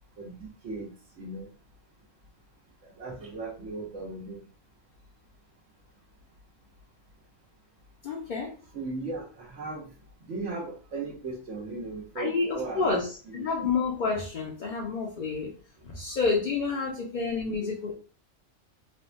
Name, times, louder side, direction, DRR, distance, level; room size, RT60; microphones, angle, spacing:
voice 1, 0.2-0.9 1.2-1.5 3.0-4.4 8.7-9.9 10.3-13.0 13.3-13.7, right 3 dB, 75° right, -7 dB, 1.2 m, -37 dB
voice 2, 8.0-8.5 12.2-13.1 13.3-15.5 15.8-17.9, left 4 dB, 50° left, -3 dB, 0.7 m, -29 dB
3.5 x 2.2 x 2.5 m, 0.36 s
omnidirectional pair, 1.3 m